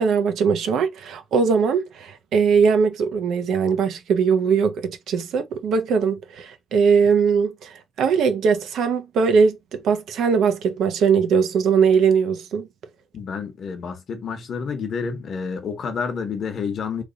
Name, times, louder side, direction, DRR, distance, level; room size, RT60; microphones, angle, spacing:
voice 1, 0.0-12.7, right 6 dB, 65° right, 0.7 m, -20 dB
voice 2, 13.1-17.0, left 5 dB, 45° left, 1.0 m, -29 dB
3.3 x 2.4 x 3.8 m
cardioid pair, 150°, 0 cm